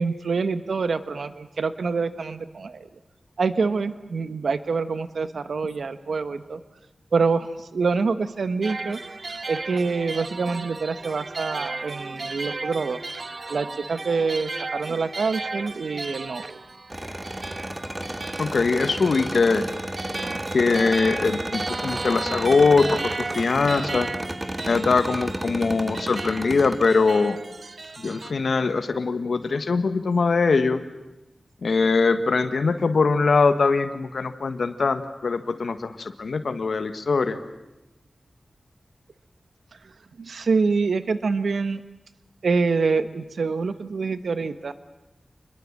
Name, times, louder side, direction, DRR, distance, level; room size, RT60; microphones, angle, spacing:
voice 1, 0.0-2.9 3.4-6.6 7.1-9.0 9.5-13.0 13.5-16.6 40.2-41.8 42.4-44.7, right 4 dB, 90° right, 12 dB, 1.2 m, -26 dB
sound 1, 8.6-28.3, right 3 dB, 45° right, 0.9 m, -35 dB
sound 2, 16.9-26.9, right 1 dB, 10° right, 1.8 m, -32 dB
voice 2, 18.4-19.6 20.5-24.1 24.7-27.4 28.0-30.8 31.6-37.4, left 4 dB, 75° left, 9 dB, 1.6 m, -22 dB
28.5 x 21.5 x 7.5 m, 1.0 s
wide cardioid pair, 110°, 0 cm